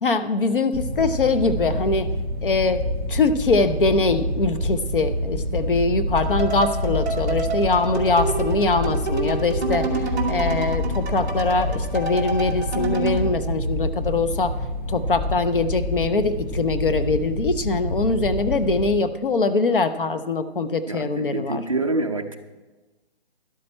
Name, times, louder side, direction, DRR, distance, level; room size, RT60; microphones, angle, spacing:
voice 1, 0.0-2.1 2.4-2.8 3.1-14.5 14.9-21.6, left 3 dB, 55° left, 10 dB, 0.9 m, -23 dB
sound 1, 0.7-18.9, left 1 dB, 35° left, 2.3 m, -27 dB
sound 2, 6.2-13.3, right 4 dB, 15° right, 1.3 m, -29 dB
voice 2, 20.9-22.4, right 2 dB, 30° right, 4 dB, 0.6 m, -26 dB
12.5 x 12.0 x 4.4 m, 1.2 s
hypercardioid pair, 180°, 32 cm